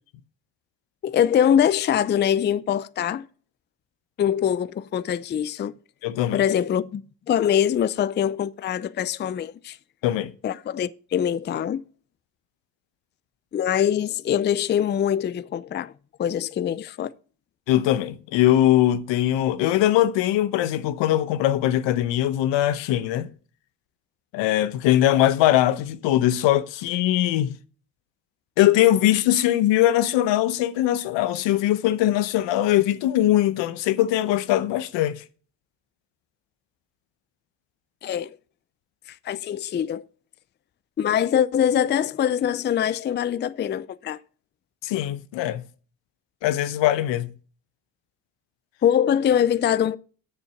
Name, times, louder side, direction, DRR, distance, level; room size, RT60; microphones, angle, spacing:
voice 1, 1.0-3.3 4.2-5.7 6.3-7.0 7.3-9.8 10.4-11.8 13.5-15.9 16.2-17.1 38.0-38.4 39.2-40.0 41.0-44.2 48.8-50.0, left 9 dB, 25° left, 0.4 m, -23 dB
voice 2, 6.0-6.4 10.0-10.3 17.7-23.3 24.3-27.6 28.6-35.2 44.8-45.6 46.4-47.3, left 13 dB, 80° left, 0.9 m, -21 dB
7.3 x 6.7 x 5.8 m
cardioid pair, 90°, 43 cm